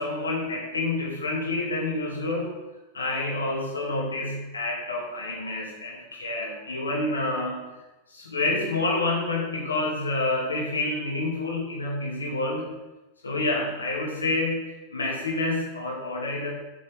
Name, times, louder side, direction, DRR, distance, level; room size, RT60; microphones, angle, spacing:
voice 1, 0.0-2.5 2.9-7.8 8.1-12.7 13.2-16.5, left 2 dB, 75° left, -2 dB, 2.4 m, -28 dB
12.5 x 6.5 x 3.8 m, 1.1 s
figure-of-eight pair, 90°, 0 cm